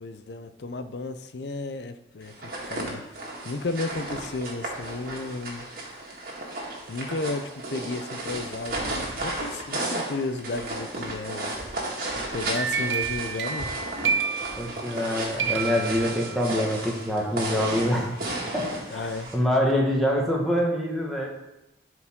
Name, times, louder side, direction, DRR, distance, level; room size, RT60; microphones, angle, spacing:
voice 1, 0.0-3.0 3.4-5.7 6.9-11.6 12.3-13.7 18.9-19.3, left 3 dB, 70° left, 10 dB, 0.5 m, -33 dB
sound 1, 2.3-19.3, right 2 dB, 50° right, 1.8 m, -34 dB
sound 2, 12.3-15.1 15.4-16.7, right 6 dB, 85° right, 0.7 m, -30 dB
voice 2, 14.5-18.1 18.5-21.3, left 1 dB, ahead, -3 dB, 1.4 m, -25 dB
12.0 x 4.8 x 3.6 m, 0.91 s
head